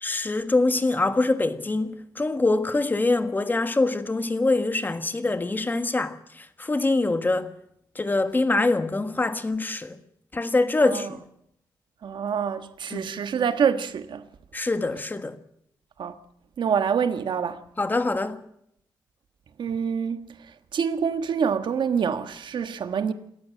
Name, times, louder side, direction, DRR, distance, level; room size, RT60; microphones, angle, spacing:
voice 1, 0.0-7.5 7.9-10.0 10.3-11.2 12.9-13.2 14.5-15.4 17.8-18.4, left 2 dB, 25° left, 1.5 m, -24 dB
voice 2, 12.0-14.3 16.0-16.2 16.6-17.6 19.6-23.1, right 7 dB, 70° right, 1.4 m, -26 dB
27.0 x 14.0 x 7.5 m
wide cardioid pair, 115°, 8 cm